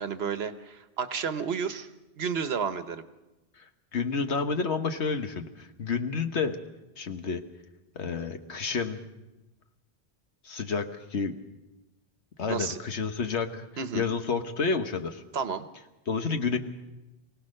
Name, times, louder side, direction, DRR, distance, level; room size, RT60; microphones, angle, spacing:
voice 1, 0.0-1.9 2.2-3.0 12.5-12.8 13.8-14.1 15.3-15.7, right 6 dB, 65° right, 11 dB, 1.2 m, -31 dB
voice 2, 3.9-6.6 7.0-7.4 7.9-9.0 10.4-11.3 12.4-13.7 13.9-15.2 16.1-16.6, left 5 dB, 75° left, 7 dB, 1.5 m, -30 dB
24.0 x 17.5 x 6.5 m, 1.0 s
omnidirectional pair, 1.2 m